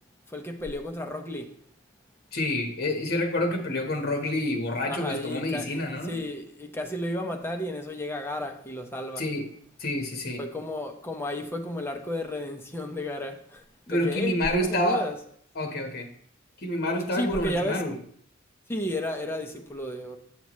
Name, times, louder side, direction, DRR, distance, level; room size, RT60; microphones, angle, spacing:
voice 1, 0.3-1.5 4.9-9.2 10.4-15.2 17.1-17.9 18.7-20.2, left 1 dB, 10° left, 0.8 m, -33 dB
voice 2, 2.3-6.2 9.2-9.5 9.8-10.4 13.9-15.0 15.5-16.1 16.6-17.9, left 1 dB, 50° left, 1.3 m, -28 dB
8.3 x 6.8 x 3.1 m
head